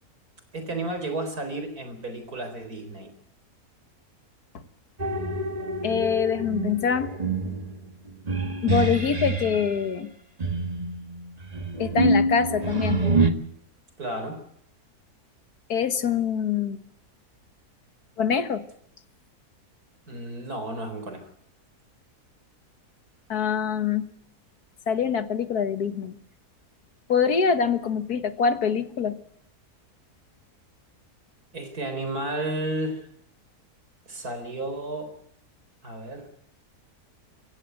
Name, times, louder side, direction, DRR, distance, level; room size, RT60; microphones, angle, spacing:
voice 1, 0.5-3.1 14.0-14.4 20.1-21.2 31.5-33.1 34.1-35.1 35.8-36.3, right 1 dB, 70° right, 7 dB, 4.7 m, -32 dB
sound 1, 5.0-9.7 10.4-13.3, right 2 dB, 25° right, 1.6 m, -26 dB
voice 2, 5.8-7.1 8.6-10.1 11.8-13.0 15.7-16.8 18.2-18.6 23.3-24.0 24.9-26.2 27.1-29.2, left 6 dB, 75° left, 11 dB, 1.9 m, -24 dB
25.0 x 15.5 x 8.0 m, 0.71 s
omnidirectional pair, 1.7 m